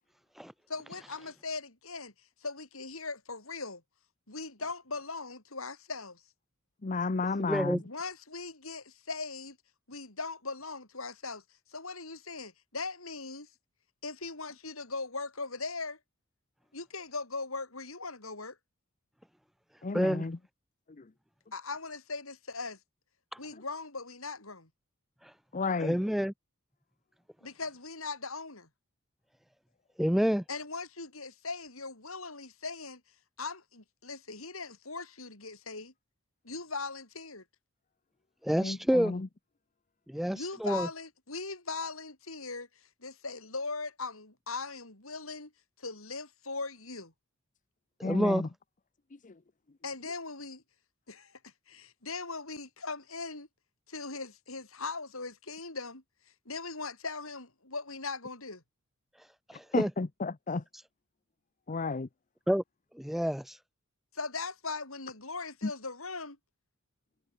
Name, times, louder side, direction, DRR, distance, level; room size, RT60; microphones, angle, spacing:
voice 1, 0.7-2.1 2.4-3.8 4.3-6.2 7.8-9.6 9.9-11.4 11.7-13.5 14.0-16.0 16.7-18.6 21.5-22.8 23.4-24.7 27.4-28.7 30.5-33.0 33.4-35.9 36.4-37.4 40.3-42.7 43.0-45.5 45.8-47.1 49.8-50.6 51.1-53.5 53.9-56.0 56.5-58.6 64.1-66.4, left 3 dB, 75° left, 7.9 m, -39 dB
voice 2, 6.8-7.8 19.8-20.4 25.5-25.9 38.6-39.3 48.0-48.5 49.2-49.3 59.7-60.6 61.7-62.1 65.6-65.7, left 3 dB, 40° left, 0.7 m, -32 dB
voice 3, 7.5-7.8 19.9-20.3 25.8-26.3 30.0-30.4 38.4-39.1 40.1-40.9 48.0-48.4 59.5-59.9 62.5-62.6 63.0-63.6, equal, ahead, 0.3 m, -28 dB
head